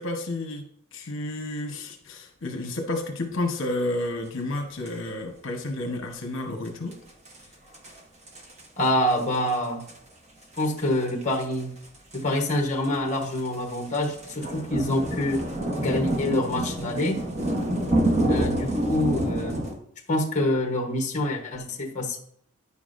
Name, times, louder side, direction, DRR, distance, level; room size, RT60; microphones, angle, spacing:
voice 1, 0.0-7.0, left 2 dB, 60° left, 3 dB, 1.0 m, -31 dB
sound 1, 4.9-5.0 6.7-6.8 6.9-7.0 7.3-7.4 7.7-8.0 8.3-8.9 9.2-9.5 9.8-10.0 10.6-19.7, right 1 dB, 30° right, 1.1 m, -28 dB
voice 2, 8.8-9.9 10.6-11.7 12.1-15.4 15.8-17.2 18.3-19.6 20.1-22.2, left 1 dB, 35° left, 2 dB, 1.0 m, -26 dB
9.7 x 7.0 x 2.6 m, 0.67 s
head